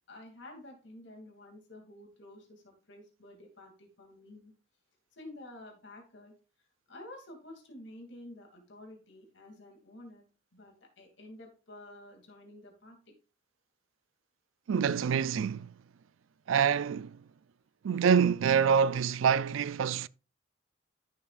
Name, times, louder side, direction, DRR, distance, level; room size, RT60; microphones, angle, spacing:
voice 1, 0.1-4.5 5.1-6.3 6.9-10.2 10.5-13.1, left 1 dB, 70° left, 2.6 m, -50 dB
voice 2, 14.7-15.7 16.5-17.2 17.8-20.1, right 7 dB, 85° right, 0.4 m, -26 dB
13.5 x 7.2 x 2.5 m
head